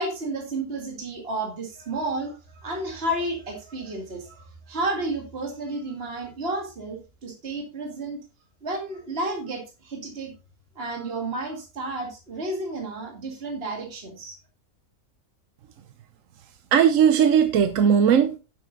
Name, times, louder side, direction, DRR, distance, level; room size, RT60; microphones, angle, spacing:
voice 1, 0.0-8.2 8.6-10.3 10.8-14.4, right 2 dB, 40° right, 2.2 m, -31 dB
voice 2, 16.7-18.4, right 8 dB, 65° right, 1.0 m, -18 dB
9.5 x 7.6 x 3.8 m
omnidirectional pair, 1.6 m